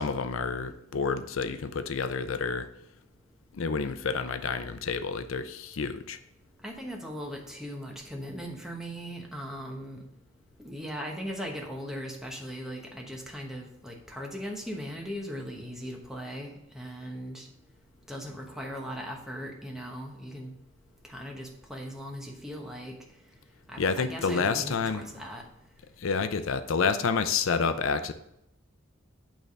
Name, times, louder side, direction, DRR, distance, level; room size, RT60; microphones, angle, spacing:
voice 1, 0.0-2.7 3.5-6.2 23.8-25.0 26.0-28.1, left 5 dB, 90° left, 11 dB, 0.5 m, -29 dB
voice 2, 6.6-10.0 10.6-17.5 18.1-20.5 21.0-22.9 23.7-25.4, equal, ahead, 0 dB, 1.0 m, -39 dB
8.9 x 3.4 x 5.4 m, 0.80 s
head